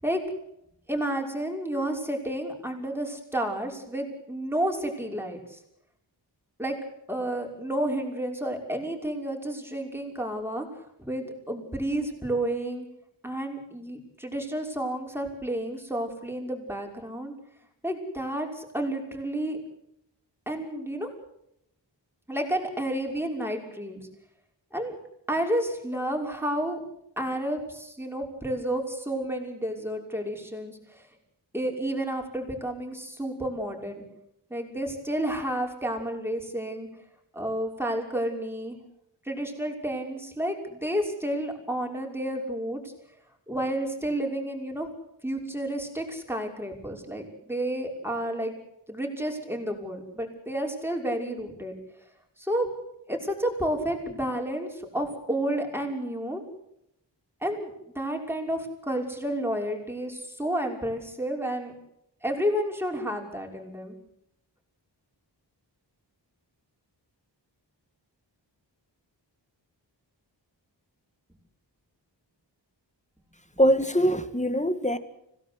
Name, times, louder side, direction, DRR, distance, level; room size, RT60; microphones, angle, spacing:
voice 1, 0.9-5.6 6.6-6.8 7.1-10.7 11.0-12.9 13.2-17.3 17.8-19.6 20.5-21.1 22.3-24.1 24.7-24.9 25.3-26.8 27.2-31.1 31.5-34.0 34.5-36.9 37.3-38.8 39.2-42.9 43.5-44.9 45.2-48.5 48.9-51.7 52.4-52.7 53.1-56.4 57.4-61.7 62.2-64.0, right 1 dB, 5° right, 5.9 m, -31 dB
voice 2, 73.6-75.0, equal, 15° left, 2.2 m, -22 dB
26.0 x 18.0 x 8.2 m
wide cardioid pair, 60°, 44 cm